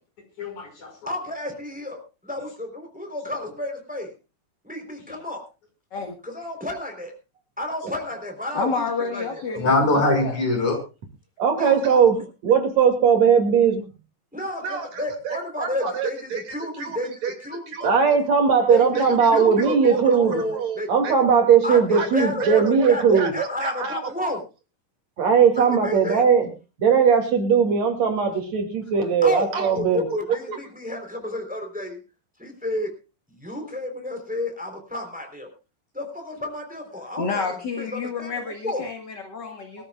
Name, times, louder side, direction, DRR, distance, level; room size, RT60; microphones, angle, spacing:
voice 1, 0.4-1.1 5.1-5.2 9.6-10.8 28.9-29.0 33.5-33.6, left 2 dB, 60° left, 6.8 m, -23 dB
voice 2, 1.0-4.1 4.6-5.4 6.2-7.1 7.6-9.6 11.5-11.8 12.1-12.2 14.3-17.9 18.7-20.9 21.6-24.4 25.5-26.3 29.2-32.0 32.4-32.9 33.3-35.5 35.9-37.5 37.8-38.8, left 1 dB, ahead, 3.4 m, -31 dB
voice 3, 8.5-10.4 37.2-39.8, left 4 dB, 40° left, 1.8 m, -29 dB
voice 4, 11.4-13.8 14.6-14.9 15.3-16.4 16.8-17.0 17.2-17.3 17.7-23.3 23.6-24.0 25.2-26.5 26.8-30.0, right 6 dB, 55° right, 3.5 m, -19 dB
23.5 x 13.5 x 2.4 m
omnidirectional pair, 3.8 m